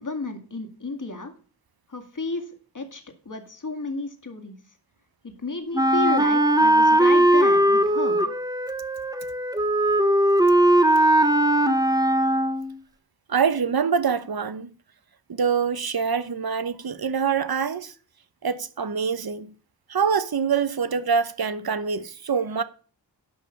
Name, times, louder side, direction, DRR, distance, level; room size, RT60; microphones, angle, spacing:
voice 1, 0.0-1.3 1.9-2.5 2.7-4.6 5.2-8.2, left 3 dB, 45° left, 2.2 m, -32 dB
Wind instrument woodwind instrument, 5.7-12.7, right 1 dB, 10° right, 1.0 m, -19 dB
voice 2, 13.3-14.7 15.3-17.9 18.4-19.5 19.9-22.6, right 6 dB, 55° right, 1.0 m, -25 dB
11.5 x 5.5 x 6.7 m
wide cardioid pair, 80°, 42 cm